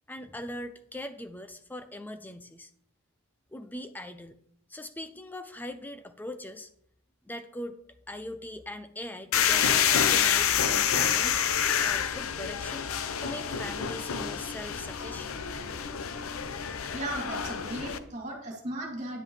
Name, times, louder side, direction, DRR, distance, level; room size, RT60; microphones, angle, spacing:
voice 1, 0.1-2.7 3.5-4.4 4.7-6.7 7.2-7.8 8.1-11.4 11.8-12.9 13.2-15.4, left 1 dB, 10° left, 10 dB, 0.4 m, -41 dB
sound 1, 9.3-18.0, left 8 dB, 70° left, 0.6 m, -28 dB
voice 2, 16.9-19.2, right 1 dB, 35° right, -1 dB, 2.8 m, -36 dB
9.9 x 9.4 x 3.2 m, 0.69 s
head